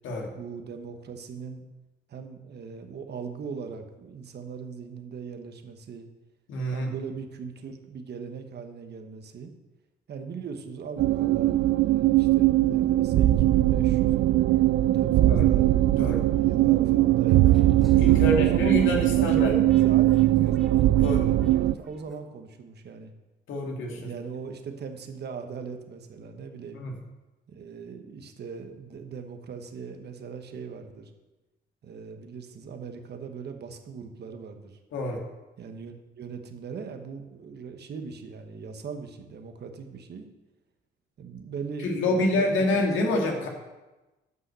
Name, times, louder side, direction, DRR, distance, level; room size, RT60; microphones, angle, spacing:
voice 1, 0.3-1.6 2.1-6.1 6.7-9.5 10.1-15.7 16.4-17.7 18.1-23.1 24.0-26.8 27.5-31.1 31.8-34.8 35.6-40.2 41.2-43.2, right 6 dB, 55° right, 6 dB, 1.3 m, -39 dB
voice 2, 6.5-6.9 15.3-15.5 16.0-16.2 18.0-19.5 21.0-21.3 23.5-24.1 26.7-27.0 34.9-35.2 41.8-43.5, left 1 dB, 80° left, 1 dB, 2.1 m, -27 dB
sound 1, 11.0-21.7, right 15 dB, 70° right, 0.4 m, -21 dB
sound 2, 17.3-22.2, left 1 dB, ahead, 1.3 m, -45 dB
9.5 x 5.5 x 6.9 m, 1.1 s
cardioid pair, 90°, 20 cm